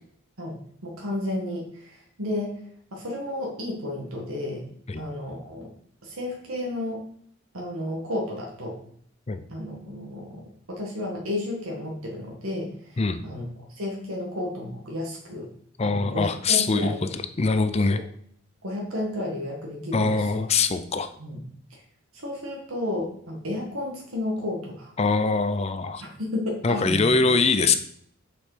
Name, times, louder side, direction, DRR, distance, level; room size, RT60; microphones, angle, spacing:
voice 1, 0.8-2.6 2.9-4.7 5.0-5.7 6.0-7.0 7.5-8.8 9.5-10.4 10.7-13.4 13.7-15.5 15.8-17.1 17.9-18.0 18.6-20.4 21.2-21.4 22.1-24.9 26.0-27.3, left 1 dB, 85° right, -1 dB, 1.8 m, -32 dB
voice 2, 15.8-18.0 19.9-21.1 25.0-26.0 26.6-27.8, left 4 dB, 30° left, 10 dB, 0.5 m, -23 dB
6.8 x 5.4 x 5.0 m, 0.62 s
head